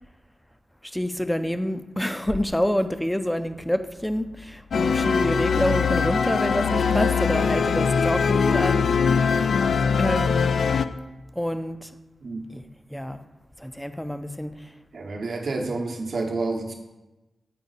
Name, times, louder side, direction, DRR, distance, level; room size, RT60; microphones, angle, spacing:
voice 1, 0.8-9.5 10.0-10.5 11.4-11.9 12.5-12.6 12.9-13.2 13.6-14.5, equal, 5° left, 10 dB, 0.5 m, -27 dB
sound 1, 4.7-10.8, left 6 dB, 75° left, 0.3 m, -22 dB
voice 2, 14.9-16.7, right 3 dB, 65° right, 2 dB, 1.0 m, -29 dB
8.3 x 4.6 x 4.1 m, 1.0 s
cardioid pair, 70°, 0 cm